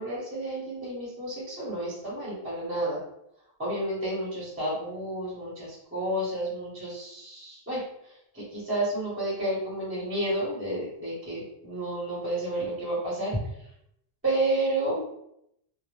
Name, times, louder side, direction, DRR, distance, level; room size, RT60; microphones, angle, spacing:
voice 1, 0.0-3.0 3.6-7.8 8.3-13.4 14.2-15.0, right 1 dB, 15° right, -7 dB, 0.8 m, -31 dB
2.1 x 2.1 x 3.0 m, 0.78 s
omnidirectional pair, 1.0 m